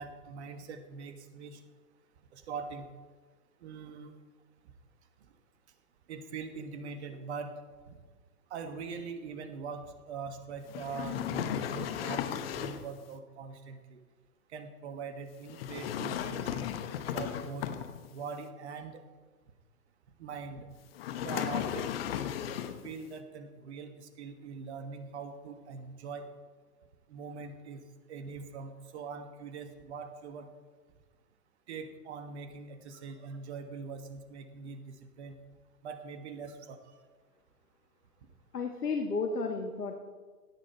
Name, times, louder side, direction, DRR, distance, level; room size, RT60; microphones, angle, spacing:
voice 1, 0.0-1.6 2.3-2.9 3.6-4.1 6.1-7.5 7.9-8.0 8.5-12.2 12.5-14.0 14.5-16.6 17.1-17.7 18.1-19.0 20.2-20.7 21.2-21.9 22.8-26.3 27.1-27.8 28.1-30.5 31.7-35.4 35.8-36.8, right 5 dB, 45° right, 8 dB, 1.5 m, -42 dB
sound 1, 10.7-12.9 15.5-18.2 20.9-22.9, left 10 dB, 40° left, 1.0 m, -35 dB
voice 2, 38.5-40.0, left 4 dB, 75° left, 5 dB, 1.4 m, -32 dB
16.5 x 8.9 x 4.4 m, 1.4 s
figure-of-eight pair, 120°, 47 cm